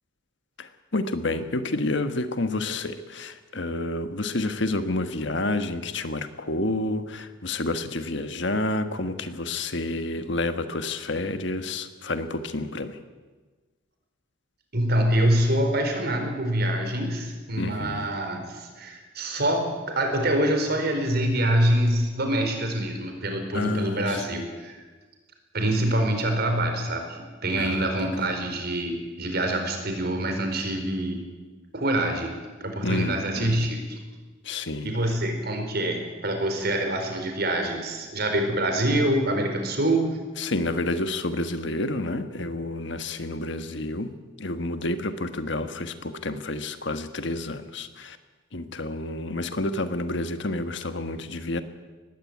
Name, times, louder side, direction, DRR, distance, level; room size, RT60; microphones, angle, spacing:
voice 1, 0.6-13.0 17.6-18.1 23.5-24.4 27.6-28.1 32.8-33.7 34.4-35.2 40.4-44.1 44.4-48.2 48.5-51.6, left 2 dB, 65° left, 10 dB, 1.4 m, -29 dB
voice 2, 14.7-24.8 25.5-31.2 31.7-34.0 34.8-40.1, right 1 dB, 55° right, 4 dB, 4.4 m, -25 dB
19.5 x 16.0 x 9.4 m, 1.3 s
head